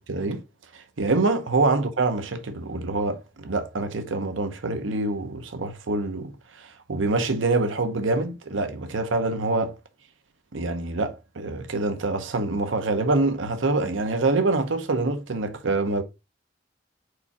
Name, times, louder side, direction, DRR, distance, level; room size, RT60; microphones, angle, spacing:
voice 1, 0.1-0.4 0.7-6.3 6.6-9.8 10.5-16.0, right 3 dB, 75° right, 0.8 m, -25 dB
4.9 x 4.6 x 4.1 m
head